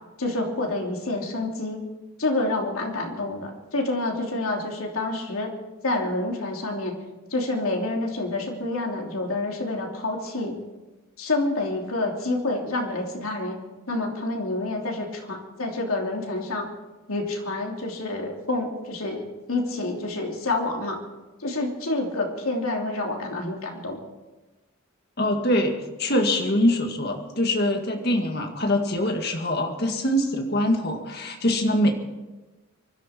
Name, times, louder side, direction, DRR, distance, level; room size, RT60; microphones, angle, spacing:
voice 1, 0.2-1.8 2.2-5.5 5.8-6.9 7.3-10.6 11.2-13.6 13.9-16.7 17.1-21.0 21.4-24.0, left 2 dB, 85° left, 1 dB, 3.0 m, -28 dB
voice 2, 25.2-31.9, left 1 dB, 50° left, 4 dB, 1.9 m, -23 dB
24.0 x 12.0 x 4.5 m, 1.1 s
head